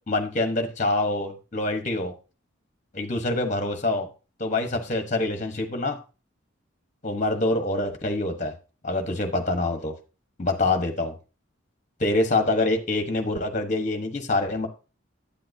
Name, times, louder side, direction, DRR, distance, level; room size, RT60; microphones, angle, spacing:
voice 1, 0.1-2.1 2.9-4.1 4.4-6.0 7.0-8.5 8.8-9.9 10.4-11.1 12.0-14.7, left 2 dB, 35° left, 6 dB, 1.1 m, -25 dB
8.6 x 8.6 x 2.7 m, 0.33 s
head